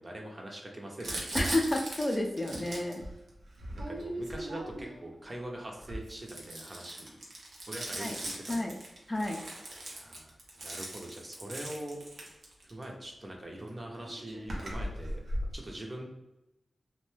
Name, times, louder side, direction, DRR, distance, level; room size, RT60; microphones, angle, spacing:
voice 1, 0.0-1.4 3.7-7.2 7.7-8.8 9.9-12.0 12.6-15.2 15.5-16.1, right 1 dB, 40° right, 0 dB, 0.7 m, -43 dB
Crumpling crinkling, 1.0-5.0 5.7-12.8 13.7-13.8 13.9-15.5, right 1 dB, 85° right, 0.6 m, -39 dB
voice 2, 1.3-3.0 8.0-8.2 8.5-8.7 9.1-9.4, left 1 dB, 25° left, 2 dB, 0.4 m, -30 dB
2.6 x 2.2 x 3.2 m, 0.94 s
cardioid pair, 50°, 0 cm